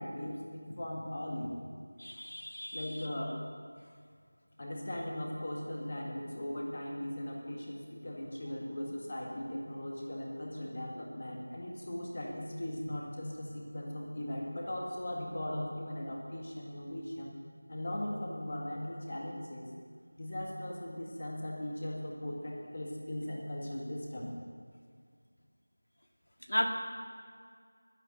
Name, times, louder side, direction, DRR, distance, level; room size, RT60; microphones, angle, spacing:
voice 1, 0.0-1.6 2.7-3.4 4.6-17.3 17.7-19.7 20.2-24.3, left 1 dB, 25° left, -1 dB, 1.9 m, -39 dB
voice 2, 2.0-3.0 12.9-13.0 26.5-26.7, left 1 dB, 90° left, 3 dB, 2.0 m, -34 dB
11.5 x 9.8 x 9.0 m, 2.1 s
figure-of-eight pair, 180°, 0 cm